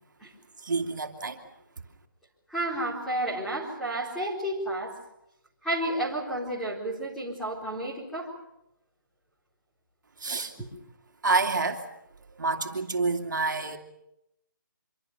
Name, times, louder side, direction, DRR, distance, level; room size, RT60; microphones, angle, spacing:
voice 1, 0.6-1.4 10.2-10.5 11.2-11.8 12.4-13.8, right 3 dB, 65° right, 4 dB, 2.5 m, -28 dB
voice 2, 2.5-5.0 5.6-8.3 10.6-10.7, right 1 dB, ahead, -7 dB, 4.0 m, -31 dB
26.0 x 24.5 x 6.7 m, 0.84 s
hypercardioid pair, 175°, 11 cm